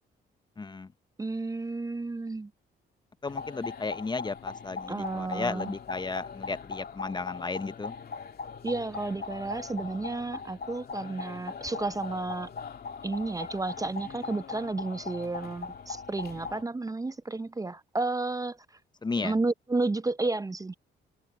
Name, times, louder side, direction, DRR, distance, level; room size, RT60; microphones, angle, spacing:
voice 1, 0.6-0.9 3.2-7.9 19.0-19.3, left 3 dB, 20° left, 0.7 m, -34 dB
voice 2, 1.2-2.5 4.9-5.8 8.6-12.5 13.0-18.8 19.2-20.7, right 3 dB, 15° right, 0.6 m, -32 dB
sound 1, 3.3-16.6, left 5 dB, 50° left, 2.4 m, -40 dB
cardioid pair, 90°, 20 cm